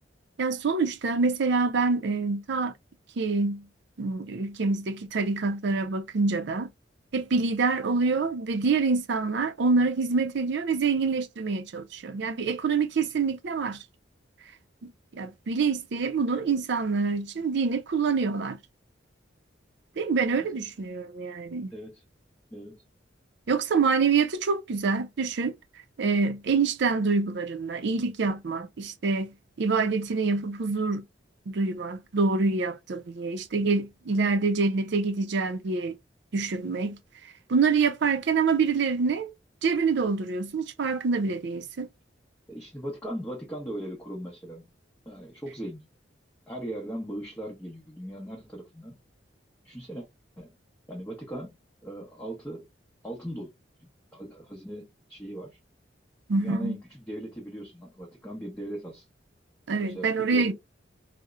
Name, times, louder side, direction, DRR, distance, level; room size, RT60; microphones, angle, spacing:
voice 1, 0.4-2.7 3.2-3.7 4.0-6.7 7.1-13.8 15.1-18.6 20.0-21.7 23.5-25.5 26.0-31.0 31.5-35.9 36.3-37.0 37.5-39.3 39.6-41.9 56.3-56.8 59.7-60.5, right 4 dB, 65° right, 0.5 m, -26 dB
voice 2, 21.7-22.0 22.5-22.8 42.5-44.7 45.1-45.9 46.5-49.0 49.6-50.1 50.4-50.5 50.9-51.6 51.8-52.7 53.0-53.5 53.8-55.6 56.4-59.0 59.8-60.5, right 1 dB, 10° left, 0.7 m, -38 dB
4.1 x 2.0 x 2.3 m
head